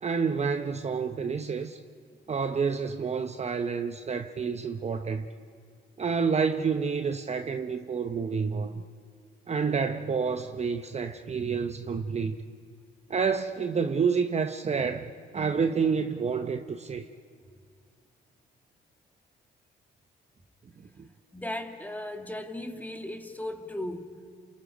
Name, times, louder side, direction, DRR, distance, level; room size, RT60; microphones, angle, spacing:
voice 1, 0.0-1.8 2.3-5.3 6.0-8.8 9.5-12.4 13.1-17.1 21.0-21.1, right 5 dB, 35° right, 0.8 m, -29 dB
voice 2, 21.3-24.3, left 1 dB, 10° left, 1.8 m, -37 dB
29.5 x 28.0 x 5.1 m
cardioid pair, 90°, 20 cm